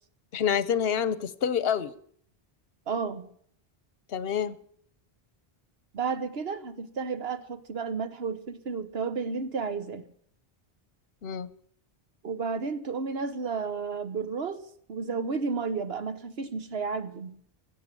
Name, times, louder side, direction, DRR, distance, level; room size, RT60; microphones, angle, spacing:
voice 1, 0.3-1.9 4.1-4.6 11.2-11.5, left 8 dB, 75° left, 1.0 m, -27 dB
voice 2, 2.9-3.3 5.9-10.0 12.2-14.6 14.9-17.4, right 5 dB, 75° right, 1.3 m, -32 dB
16.5 x 7.9 x 9.0 m
omnidirectional pair, 1.0 m